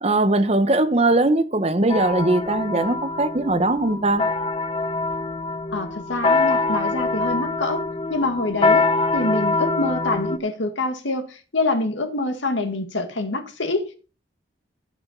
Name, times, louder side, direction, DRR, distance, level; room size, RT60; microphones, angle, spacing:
voice 1, 0.0-4.2, right 2 dB, 35° right, 1.0 m, -20 dB
sound 1, 1.9-10.4, left 3 dB, 30° left, 0.7 m, -24 dB
voice 2, 5.7-7.8 8.1-14.1, left 2 dB, 80° left, 2.1 m, -26 dB
13.5 x 5.8 x 5.6 m
head